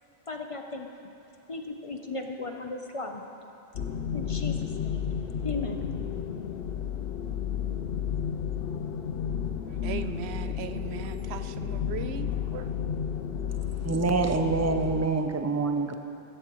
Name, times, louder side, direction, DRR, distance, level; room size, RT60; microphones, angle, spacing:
voice 1, 0.3-0.9 1.5-3.2 4.1-5.0 5.4-5.8, left 3 dB, 35° left, 4 dB, 0.6 m, -36 dB
sound 1, 3.7-15.1, left 8 dB, 70° left, 0.8 m, -32 dB
voice 2, 9.8-12.7, right 8 dB, 90° right, 10 dB, 0.9 m, -38 dB
voice 3, 13.8-16.0, right 3 dB, 20° right, 7 dB, 0.4 m, -26 dB
16.0 x 14.5 x 3.0 m, 2.7 s
omnidirectional pair, 1.1 m